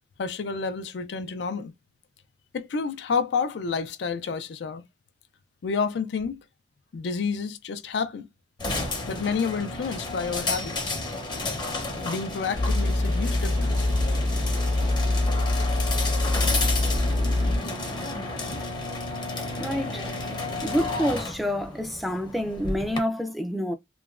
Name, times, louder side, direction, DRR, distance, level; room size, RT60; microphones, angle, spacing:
voice 1, 0.2-1.7 2.5-4.8 5.6-6.4 6.9-8.3 9.1-10.9 12.0-13.8, left 5 dB, 70° left, 0.4 m, -29 dB
sound 1, 8.6-23.0, left 2 dB, 25° left, 0.7 m, -32 dB
sound 2, 12.5-17.6, left 2 dB, 80° right, 1.0 m, -24 dB
voice 2, 19.6-20.1 20.6-23.7, equal, ahead, 0.3 m, -28 dB
3.0 x 2.1 x 2.4 m
head